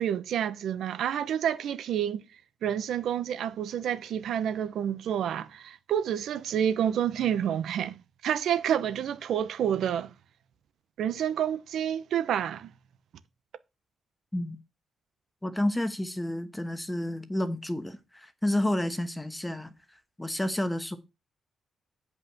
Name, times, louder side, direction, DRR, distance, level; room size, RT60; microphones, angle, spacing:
voice 1, 0.0-2.2 2.6-10.1 11.0-12.7, right 9 dB, 80° right, 0.7 m, -29 dB
voice 2, 15.4-19.7 20.2-21.0, left 1 dB, 10° left, 1.1 m, -30 dB
8.4 x 5.4 x 6.0 m
cardioid pair, 145°, 0 cm